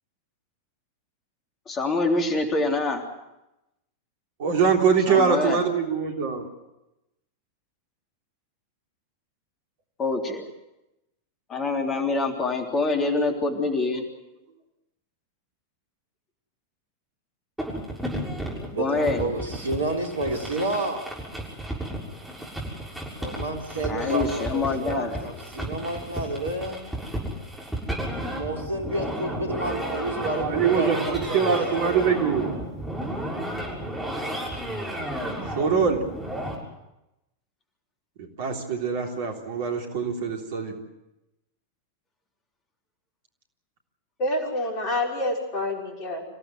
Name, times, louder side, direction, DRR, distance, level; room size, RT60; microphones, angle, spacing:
voice 1, 1.7-3.0 5.1-5.6 10.0-10.4 11.5-14.0 18.8-19.2 23.9-25.2, left 3 dB, 25° left, 3 dB, 3.4 m, -25 dB
voice 2, 4.4-6.5 30.4-32.5 35.6-36.0 38.2-40.7, right 6 dB, 50° right, 2 dB, 3.5 m, -23 dB
sound 1, 17.6-36.5, right 1 dB, 5° right, 6.7 m, -33 dB
voice 3, 18.5-21.1 23.2-26.8 28.2-32.2, right 2 dB, 70° right, 2 dB, 3.6 m, -30 dB
voice 4, 44.2-46.2, left 1 dB, 40° left, 1 dB, 5.8 m, -27 dB
27.0 x 16.5 x 7.9 m, 0.92 s
figure-of-eight pair, 90°, 0 cm